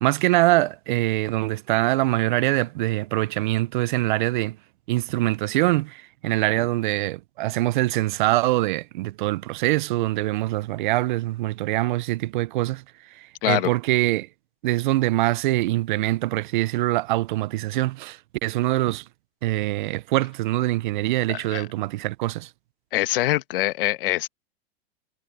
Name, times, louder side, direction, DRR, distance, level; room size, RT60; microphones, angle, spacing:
voice 1, 0.0-4.6 4.9-12.8 13.2-14.3 14.6-19.0 19.4-22.5, right 18 dB, 50° right, 0.5 m, -24 dB
voice 2, 21.3-21.7 22.9-24.3, left 16 dB, 60° left, 1.3 m, -24 dB
supercardioid pair, 165°, 31 cm